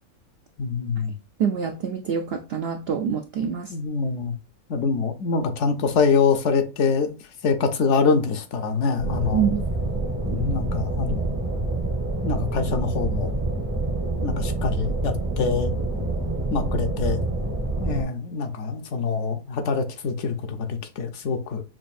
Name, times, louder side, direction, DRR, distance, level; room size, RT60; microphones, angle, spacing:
voice 1, 0.6-1.2 3.7-4.4 4.7-7.1 7.4-9.5 10.3-11.3 12.2-13.4 14.2-15.7 16.5-17.2 17.8-21.6, left 5 dB, 65° left, 0.9 m, -25 dB
voice 2, 1.4-3.7 9.3-9.6, right 7 dB, 75° right, 0.5 m, -25 dB
sound 1, 9.0-18.0, right 2 dB, 20° right, 0.6 m, -27 dB
6.0 x 2.5 x 2.4 m
omnidirectional pair, 1.5 m